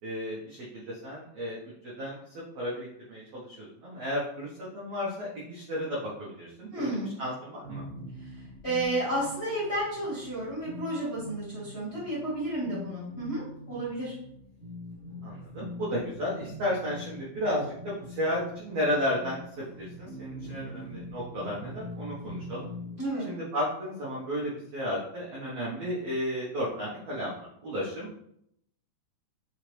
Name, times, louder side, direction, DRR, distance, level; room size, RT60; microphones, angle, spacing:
voice 1, 0.0-2.2 2.5-6.9 7.2-7.8 15.2-22.7 23.2-28.1, equal, 85° right, -6 dB, 1.4 m, -33 dB
voice 2, 6.7-7.1 8.2-14.1 23.0-23.3, right 1 dB, 85° left, -9 dB, 0.5 m, -32 dB
sound 1, 7.6-23.1, left 1 dB, 35° left, 1.0 m, -43 dB
5.6 x 2.9 x 3.1 m, 0.73 s
omnidirectional pair, 4.2 m